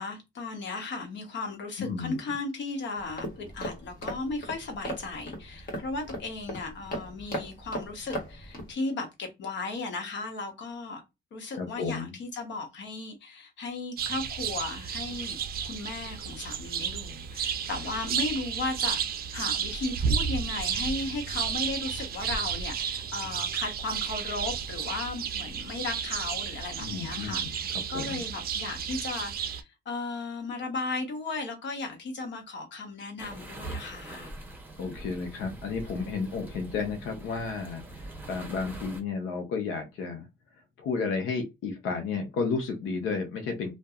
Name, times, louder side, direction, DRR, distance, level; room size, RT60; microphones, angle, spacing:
voice 1, 0.0-11.0 11.3-19.0 19.3-27.6 27.9-34.3, left 3 dB, 65° left, 1.0 m, -36 dB
voice 2, 1.8-2.2 11.6-12.1 26.8-28.2 34.8-40.3 40.8-43.7, left 5 dB, 90° left, 0.7 m, -32 dB
sound 1, 3.0-8.7, equal, 45° left, 1.3 m, -38 dB
sound 2, 14.0-29.6, right 7 dB, 50° right, 0.4 m, -32 dB
sound 3, 33.2-39.0, right 2 dB, 10° right, 0.8 m, -43 dB
2.6 x 2.2 x 2.4 m
cardioid pair, 90°, 20 cm